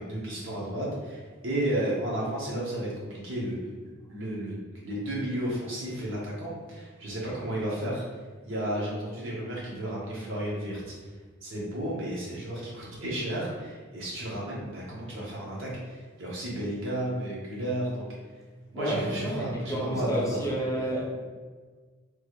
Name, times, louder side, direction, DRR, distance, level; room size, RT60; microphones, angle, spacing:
voice 1, 0.0-3.6 4.1-8.0 8.4-11.1 11.4-18.0 18.7-20.5 20.8-20.9, right 1 dB, 65° right, -5 dB, 0.9 m, -33 dB
voice 2, 18.7-21.2, right 1 dB, 15° left, -4 dB, 0.5 m, -30 dB
3.1 x 2.4 x 3.1 m, 1.4 s
head